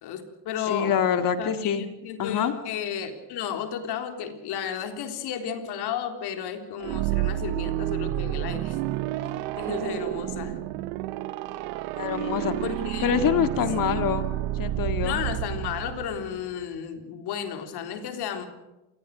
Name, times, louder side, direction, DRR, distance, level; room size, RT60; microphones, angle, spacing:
voice 1, 0.0-1.0 1.4-8.8 9.2-10.6 12.6-13.2 13.5-14.0 15.0-18.5, left 8 dB, 65° left, 6 dB, 3.8 m, -33 dB
voice 2, 0.7-1.9 2.2-2.5 12.0-12.6 13.0-14.3 14.5-15.2, left 8 dB, 50° left, 9 dB, 2.0 m, -25 dB
sound 1, 6.8-16.5, right 14 dB, 85° right, 1.2 m, -30 dB
27.0 x 20.0 x 6.6 m, 1.0 s
cardioid pair, 110°, 42 cm